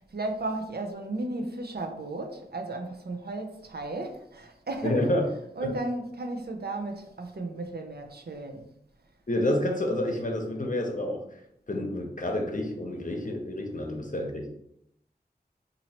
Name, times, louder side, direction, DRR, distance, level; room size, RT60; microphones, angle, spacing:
voice 1, 0.1-5.1 5.6-8.7, right 2 dB, 70° right, 0.5 m, -34 dB
voice 2, 4.8-5.2 5.6-5.7 9.3-11.4 11.7-14.5, left 1 dB, 50° left, 0.8 m, -29 dB
2.9 x 2.7 x 4.2 m
wide cardioid pair, 45°, 17 cm